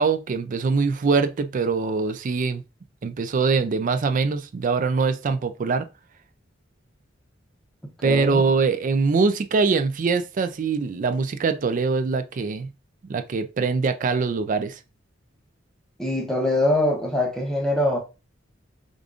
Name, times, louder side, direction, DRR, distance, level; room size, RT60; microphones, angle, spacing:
voice 1, 0.0-2.6 3.0-5.9 8.0-12.7 13.1-14.8, right 4 dB, 40° right, 0.3 m, -23 dB
voice 2, 8.0-8.4 16.0-18.0, left 1 dB, 5° left, 0.8 m, -23 dB
5.0 x 2.4 x 2.4 m
head